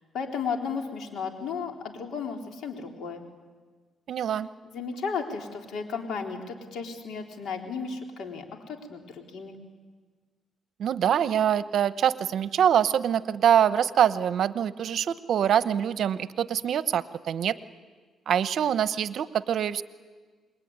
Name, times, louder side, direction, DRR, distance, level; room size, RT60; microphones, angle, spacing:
voice 1, 0.1-3.2 4.6-9.5, left 5 dB, 70° left, 3 dB, 3.8 m, -34 dB
voice 2, 4.1-4.5 10.8-17.6 18.3-19.8, right 9 dB, 65° right, 14 dB, 1.0 m, -24 dB
27.5 x 22.0 x 9.7 m, 1.5 s
cardioid pair, 90°, 0 cm